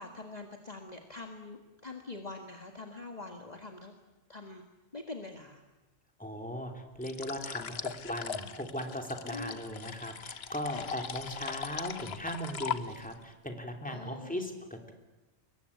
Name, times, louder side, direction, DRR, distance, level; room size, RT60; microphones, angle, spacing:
voice 1, 0.0-3.9 4.3-4.6 4.9-5.6 9.3-9.6 10.7-10.9 13.9-14.4, left 3 dB, 30° left, 3 dB, 1.8 m, -44 dB
voice 2, 6.2-14.9, equal, 5° left, 3 dB, 3.1 m, -38 dB
sound 1, 7.0-13.2, left 7 dB, 55° left, 1.2 m, -40 dB
24.0 x 21.5 x 8.5 m, 1.1 s
omnidirectional pair, 1.4 m